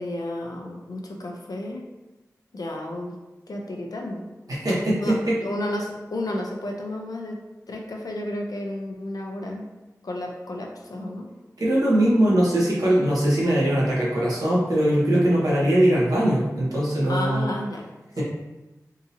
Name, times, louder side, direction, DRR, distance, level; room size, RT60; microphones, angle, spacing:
voice 1, 0.0-1.8 2.5-3.1 3.5-4.3 5.0-7.4 7.7-9.7 10.0-11.3 17.1-17.9, left 1 dB, 70° left, 1 dB, 0.6 m, -32 dB
voice 2, 4.5-5.3 11.6-17.5 18.2-18.3, right 1 dB, 70° right, -6 dB, 1.2 m, -21 dB
3.8 x 2.8 x 2.7 m, 1.1 s
wide cardioid pair, 55°, 6 cm